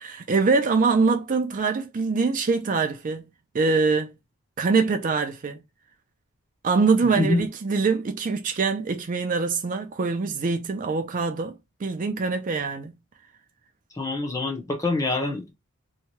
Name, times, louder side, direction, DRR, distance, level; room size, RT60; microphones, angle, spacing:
voice 1, 0.0-3.3 3.5-4.1 4.6-5.6 6.6-12.9, right 4 dB, 35° right, 0.4 m, -24 dB
voice 2, 13.9-15.5, left 2 dB, 15° left, 0.8 m, -25 dB
2.9 x 2.3 x 2.8 m
head